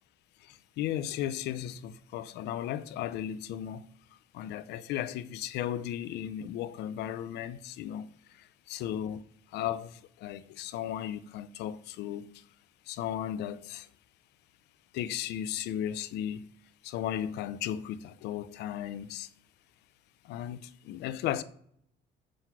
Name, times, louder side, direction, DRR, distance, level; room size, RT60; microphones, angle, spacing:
voice 1, 0.8-3.8 4.3-8.1 8.7-9.2 9.5-12.2 12.9-13.9 14.9-16.4 16.8-19.3 20.3-21.4, left 11 dB, 80° left, 0.7 m, -35 dB
7.8 x 6.4 x 5.9 m
cardioid pair, 110°, 17 cm